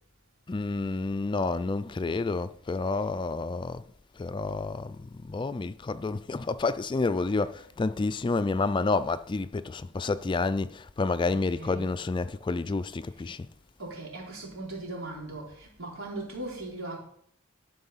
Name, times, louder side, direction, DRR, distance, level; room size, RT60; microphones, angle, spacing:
voice 1, 0.5-3.8 4.2-13.5, left 3 dB, 25° left, 0.3 m, -29 dB
voice 2, 11.3-11.9 13.8-17.0, right 2 dB, 85° right, 4.0 m, -39 dB
12.0 x 5.3 x 5.7 m
head